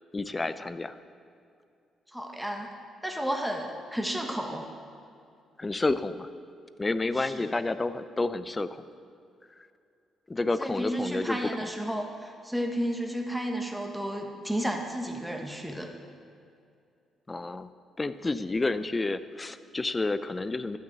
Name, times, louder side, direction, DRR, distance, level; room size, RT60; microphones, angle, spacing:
voice 1, 0.1-1.0 5.6-6.3 6.8-8.8 10.3-11.4 17.3-17.7 18.0-20.8, left 2 dB, 20° left, 12 dB, 0.5 m, -30 dB
voice 2, 2.1-2.7 3.0-4.7 7.1-7.5 10.6-15.9, equal, 5° right, 2 dB, 1.2 m, -32 dB
12.0 x 6.2 x 8.0 m, 2.5 s
cardioid pair, 90°, 0 cm